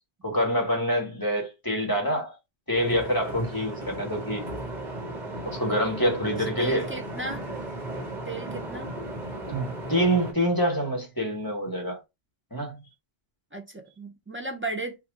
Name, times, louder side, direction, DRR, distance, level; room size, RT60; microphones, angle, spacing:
voice 1, 0.2-2.3 2.7-4.5 5.4-6.9 9.5-12.0 12.5-12.8, equal, 20° left, 1.3 m, -26 dB
sound 1, 2.7-10.3, right 1 dB, 45° right, 1.3 m, -36 dB
voice 2, 6.6-7.4 8.3-8.9 13.5-15.0, right 2 dB, 20° right, 0.4 m, -35 dB
3.0 x 2.6 x 3.5 m
omnidirectional pair, 1.1 m